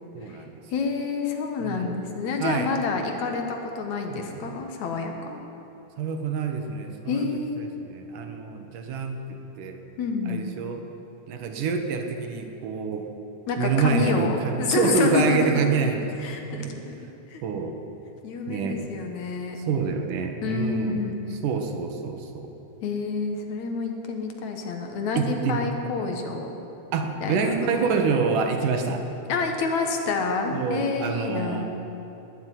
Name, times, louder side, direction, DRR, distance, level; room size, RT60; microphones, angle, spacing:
voice 1, 0.1-0.5 1.6-1.9 2.4-2.7 4.1-4.6 6.0-7.3 7.6-9.2 9.6-9.8 10.3-10.8 11.3-13.1 13.6-16.0 16.5-16.7 17.4-17.8 18.5-18.8 19.7-21.0 21.4-22.5 25.2-25.6 26.9-29.0 30.5-31.6, right 5 dB, 80° right, 5 dB, 2.8 m, -27 dB
voice 2, 0.7-5.4 7.1-7.6 10.0-10.4 13.5-15.8 16.2-17.0 17.3-17.4 18.2-19.6 20.4-21.2 22.8-26.5 27.2-28.0 29.3-31.6, left 4 dB, 65° left, 4 dB, 2.6 m, -28 dB
20.0 x 7.9 x 9.3 m, 2.9 s
omnidirectional pair, 3.7 m